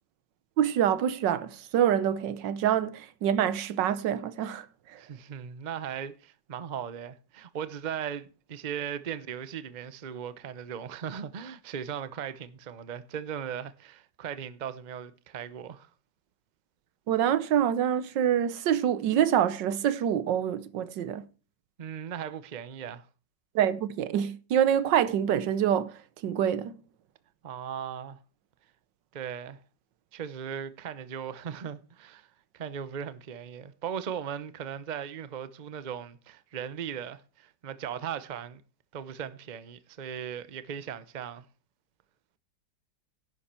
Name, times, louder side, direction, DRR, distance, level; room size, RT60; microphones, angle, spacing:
voice 1, 0.6-5.0 17.1-21.2 23.5-26.8, right 9 dB, 85° right, 1.5 m, -26 dB
voice 2, 5.0-15.9 21.8-23.1 27.4-28.2 29.1-29.6 30.1-32.3 32.5-38.6 38.9-41.5, right 8 dB, 40° right, 0.7 m, -38 dB
11.0 x 9.8 x 4.4 m
omnidirectional pair, 1.9 m